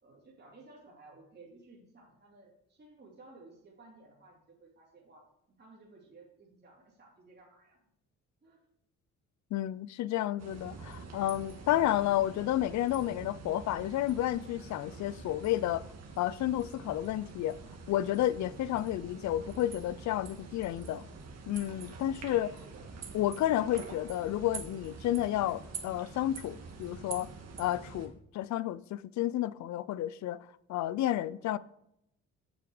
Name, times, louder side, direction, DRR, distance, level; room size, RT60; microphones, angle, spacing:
voice 1, 0.0-5.2 5.6-7.8 8.4-8.6 22.2-22.9, right 3 dB, 35° right, 3.0 m, -56 dB
voice 2, 9.5-15.9 16.2-17.6 17.9-21.0 21.5-22.6 23.1-27.3 27.6-30.4 30.7-31.6, left 13 dB, 70° left, 0.5 m, -31 dB
sound 1, 10.4-28.1, right 4 dB, 60° right, 1.9 m, -46 dB
8.1 x 7.0 x 4.9 m
cardioid pair, 90°, 30 cm